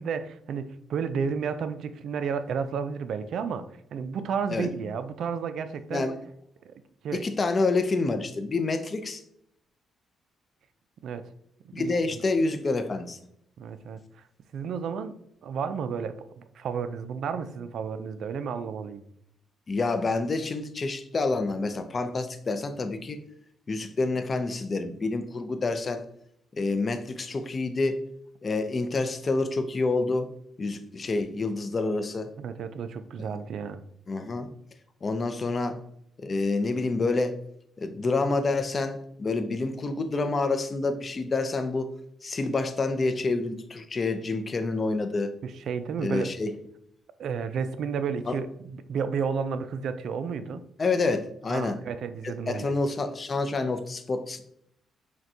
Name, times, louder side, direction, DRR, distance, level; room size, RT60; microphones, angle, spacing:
voice 1, 0.0-3.6 3.9-6.1 6.6-6.7 7.0-7.2 11.0-11.3 11.6-12.0 13.6-14.0 14.5-15.2 15.4-19.0 32.4-33.8 45.4-46.3 47.2-48.5 48.7-50.6 51.5-52.7, right 6 dB, 65° right, 11 dB, 0.3 m, -32 dB
voice 2, 7.1-9.2 11.7-13.2 19.7-23.2 23.7-26.0 26.5-28.0 28.4-30.3 30.6-32.3 34.1-34.5 35.0-35.8 36.2-37.3 37.8-41.9 42.2-45.3 46.0-46.5 48.3-48.4 50.8-51.8 52.2-54.4, left 3 dB, 35° left, 9 dB, 0.4 m, -28 dB
5.9 x 2.2 x 2.7 m, 0.73 s
cardioid pair, 90°, 0 cm